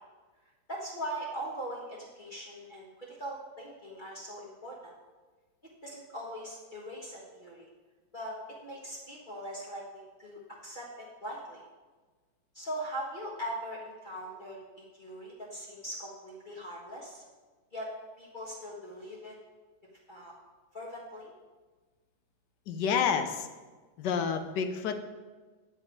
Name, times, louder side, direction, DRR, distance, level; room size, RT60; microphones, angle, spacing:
voice 1, 0.7-4.8 5.8-7.7 8.1-11.6 12.5-17.2 17.7-17.9 18.2-19.3 20.1-20.3 20.7-21.3, right 1 dB, 30° left, -5 dB, 1.5 m, -41 dB
voice 2, 22.7-23.5 24.0-25.0, left 6 dB, 80° left, 8 dB, 1.4 m, -29 dB
9.0 x 7.8 x 4.6 m, 1.3 s
omnidirectional pair, 1.8 m